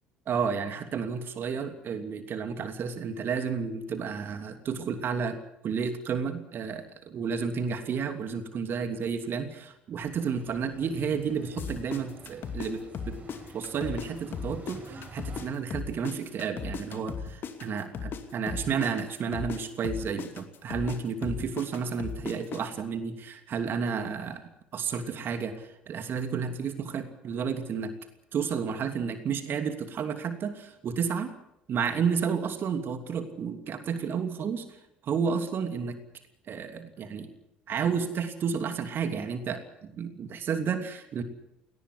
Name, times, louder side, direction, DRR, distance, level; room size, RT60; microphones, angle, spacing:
voice 1, 0.3-13.2 13.5-27.9 28.3-31.4 31.7-36.0 36.5-37.3 37.7-41.2, right 6 dB, 45° right, 8 dB, 2.9 m, -31 dB
sound 1, 10.0-15.5, right 2 dB, 30° right, 6.5 m, -48 dB
sound 2, 11.6-14.1 14.3-18.2 18.5-22.6, left 6 dB, 45° left, 2.6 m, -36 dB
19.0 x 19.0 x 9.7 m, 0.82 s
figure-of-eight pair, 60°, 5 cm